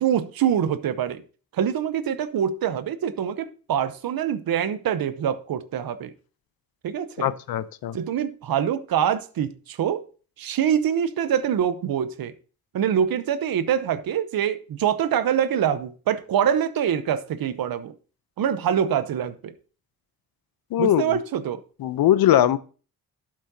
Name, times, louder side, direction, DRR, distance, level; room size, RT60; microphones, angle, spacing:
voice 1, 0.0-1.2 1.5-6.1 6.8-7.3 7.9-10.0 10.4-12.3 12.7-17.9 18.4-19.5 20.8-21.6, right 9 dB, 75° right, 0.9 m, -25 dB
voice 2, 7.2-8.0 20.7-21.2 21.8-22.6, left 11 dB, 85° left, 0.7 m, -21 dB
12.0 x 7.4 x 2.7 m
cardioid pair, 55°, 35 cm